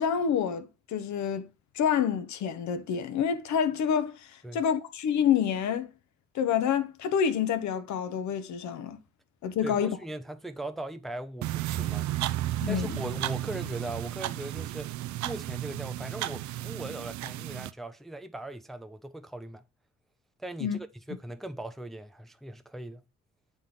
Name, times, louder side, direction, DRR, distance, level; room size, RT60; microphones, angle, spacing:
voice 1, 0.0-1.5 1.7-5.9 6.3-9.0 9.4-10.0 12.6-13.0 20.6-20.8, left 8 dB, 75° left, 0.9 m, -28 dB
voice 2, 9.6-12.1 12.6-15.0 15.2-19.6 20.4-23.0, right 1 dB, ahead, 0.4 m, -39 dB
sound 1, 11.4-17.7, right 14 dB, 80° right, 0.5 m, -33 dB
7.8 x 3.8 x 3.9 m
cardioid pair, 110°, 29 cm